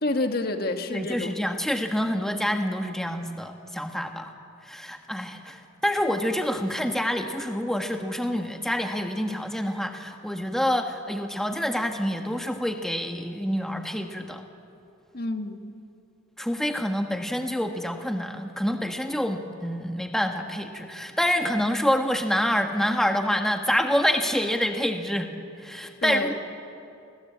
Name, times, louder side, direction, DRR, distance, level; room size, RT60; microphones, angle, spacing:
voice 1, 0.0-1.3 15.1-15.7 26.0-26.3, left 2 dB, 50° left, 6 dB, 1.6 m, -28 dB
voice 2, 0.9-4.3 4.6-14.4 16.4-25.3 25.6-26.3, equal, ahead, 4 dB, 1.3 m, -27 dB
29.5 x 20.0 x 8.6 m, 2.6 s
head